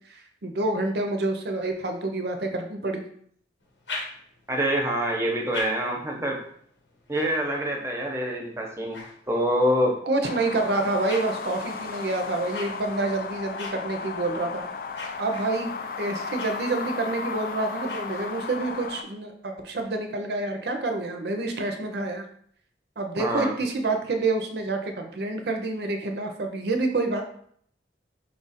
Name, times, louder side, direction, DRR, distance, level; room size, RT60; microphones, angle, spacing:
voice 1, 0.1-3.1 10.0-14.7 15.2-22.2 23.0-27.2, right 2 dB, 65° right, 4 dB, 0.6 m, -28 dB
sound 1, 3.6-4.6 5.2-9.8 10.4-18.7, left 2 dB, 90° left, 1.1 m, -44 dB
voice 2, 4.5-6.4 7.1-9.0 9.3-10.0 23.2-23.5, equal, 15° right, 0 dB, 0.7 m, -25 dB
sound 2, 10.2-19.0, left 5 dB, 50° left, 0.4 m, -35 dB
4.4 x 2.4 x 4.1 m, 0.63 s
head